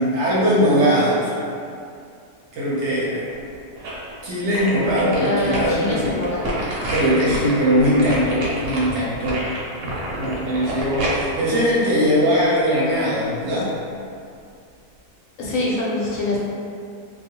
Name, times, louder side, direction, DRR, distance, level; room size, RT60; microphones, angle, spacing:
voice 1, 0.0-1.3 2.5-3.2 4.2-6.1 6.9-9.4 10.2-13.7, equal, 65° right, -7 dB, 0.9 m, -20 dB
sound 1, 3.3-4.1 4.5-12.6 13.0-13.1, right 1 dB, 85° right, 1.0 m, -29 dB
voice 2, 5.1-6.5 15.4-16.4, left 2 dB, 75° left, -6 dB, 1.0 m, -24 dB
2.3 x 2.2 x 2.7 m, 2.5 s
omnidirectional pair, 1.4 m